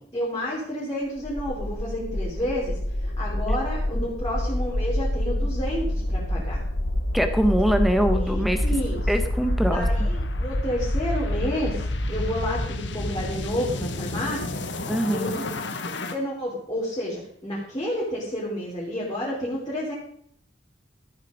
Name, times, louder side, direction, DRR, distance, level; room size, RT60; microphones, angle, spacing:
voice 1, 0.1-6.6 8.2-9.0 9.7-14.6 15.1-15.5 15.9-19.9, equal, 25° left, -6 dB, 3.4 m, -30 dB
sound 1, 1.2-16.1, left 1 dB, 70° left, 1.3 m, -27 dB
voice 2, 7.1-8.6 9.1-10.1 14.9-15.3, equal, ahead, 7 dB, 1.3 m, -23 dB
14.0 x 8.6 x 5.1 m, 0.66 s
head